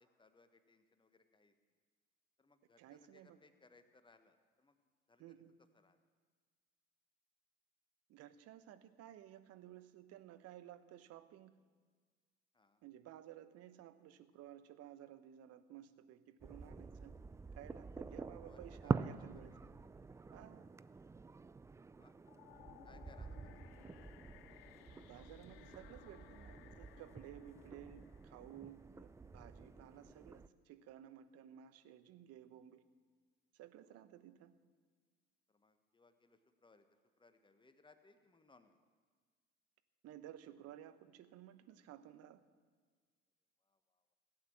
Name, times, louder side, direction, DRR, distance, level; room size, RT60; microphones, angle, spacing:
voice 1, 0.0-1.5 2.4-4.8 5.1-5.4 5.7-6.0 12.5-12.8 18.4-18.9 19.5-19.6 21.8-22.2 22.8-23.5 35.5-36.8 37.2-38.8 43.7-43.8, left 3 dB, 15° left, 9 dB, 1.3 m, -67 dB
voice 2, 2.8-3.4 5.2-5.5 8.1-11.6 12.8-17.1 17.5-19.6 20.3-20.7 23.5-23.6 24.9-32.8 33.5-34.5 40.0-42.4, right 11 dB, 55° right, 12 dB, 0.9 m, -56 dB
sound 1, 16.4-30.5, right 4 dB, 10° right, 0.3 m, -46 dB
sound 2, 22.2-29.3, left 14 dB, 70° left, 0.6 m, -62 dB
16.5 x 8.5 x 7.5 m, 1.5 s
hypercardioid pair, 60°, 30 cm